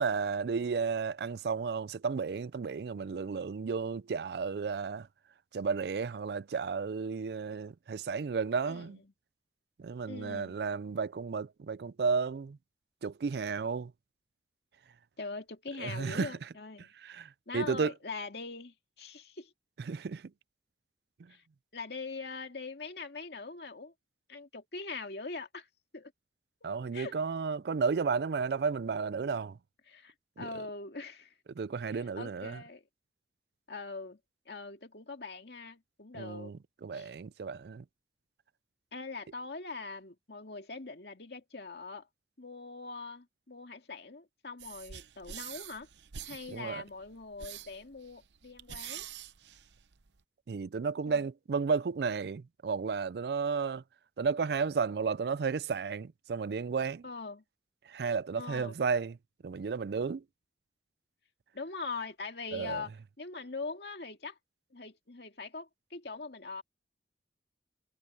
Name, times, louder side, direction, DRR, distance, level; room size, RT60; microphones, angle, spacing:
voice 1, 0.0-5.1 5.5-9.0 9.8-12.6 13.0-13.9 15.8-16.3 17.0-17.9 19.8-20.3 26.6-29.6 30.4-30.5 31.6-32.6 36.1-37.8 46.5-46.8 50.5-53.8 54.2-57.0 57.9-59.2 59.4-60.2 62.5-62.8, right 5 dB, 60° right, 0.4 m, -33 dB
voice 2, 10.1-10.6 15.2-16.9 17.5-19.5 21.3-21.4 21.7-23.9 24.3-25.7 25.9-26.1 26.6-27.2 29.9-31.3 31.9-32.8 33.7-34.2 34.5-36.5 36.9-37.1 38.9-42.1 42.4-45.9 46.2-49.1 51.1-51.2 57.0-57.4 58.4-58.8 61.5-62.9 63.2-64.4 64.7-66.6, left 4 dB, 65° left, 2.3 m, -42 dB
sound 1, 44.6-50.2, right 9 dB, 80° right, 0.8 m, -46 dB
head